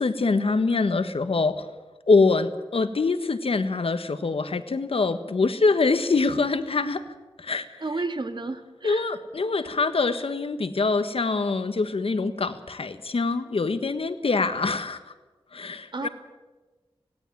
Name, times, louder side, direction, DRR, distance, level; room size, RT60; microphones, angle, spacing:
voice 1, 0.0-1.6 2.1-7.0 7.4-7.6 8.8-15.0 15.5-16.1, left 3 dB, 75° left, 10 dB, 1.4 m, -24 dB
voice 2, 7.8-9.2 15.9-16.1, right 3 dB, 50° right, 7 dB, 1.9 m, -32 dB
17.5 x 17.5 x 9.2 m, 1.2 s
wide cardioid pair, 90°, 10 cm